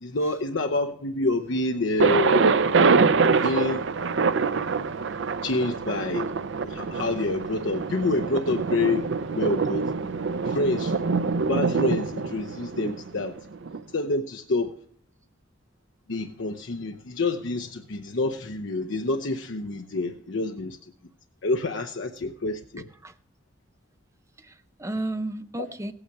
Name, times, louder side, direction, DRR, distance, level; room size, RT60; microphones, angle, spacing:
voice 1, 0.0-2.5 3.4-3.9 5.4-6.3 6.6-9.8 10.4-10.9 11.4-13.4 13.9-14.7 16.1-20.8 21.4-22.9, left 2 dB, 70° left, 6 dB, 0.7 m, -27 dB
Thunder, 2.0-13.8, right 4 dB, 65° right, 0.5 m, -25 dB
voice 2, 24.4-25.9, right 2 dB, 15° right, 9 dB, 0.6 m, -34 dB
16.0 x 8.8 x 4.6 m, 0.62 s
head